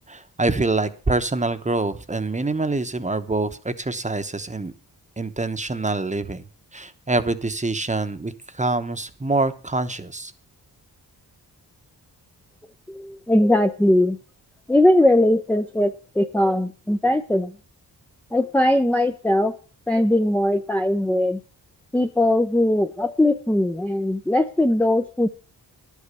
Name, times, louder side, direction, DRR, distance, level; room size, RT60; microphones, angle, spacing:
voice 1, 0.1-4.7 5.2-6.5 6.7-10.3, right 2 dB, 20° right, 10 dB, 1.0 m, -25 dB
voice 2, 12.9-14.2 14.7-17.5 18.3-19.5 19.9-21.4 21.9-25.3, left 1 dB, 5° left, 5 dB, 0.6 m, -20 dB
11.0 x 8.3 x 6.8 m, 0.38 s
wide cardioid pair, 100°, 40 cm